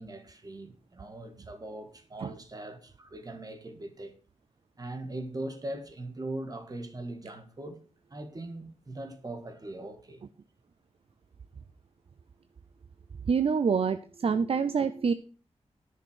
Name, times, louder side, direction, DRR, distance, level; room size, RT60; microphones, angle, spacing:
voice 1, 0.0-4.1 4.8-7.8 8.1-10.2 14.3-14.4, right 1 dB, 35° right, 1.7 m, -40 dB
voice 2, 13.3-15.1, right 6 dB, 55° right, 0.6 m, -26 dB
10.0 x 6.6 x 6.4 m
wide cardioid pair, 105°, 11 cm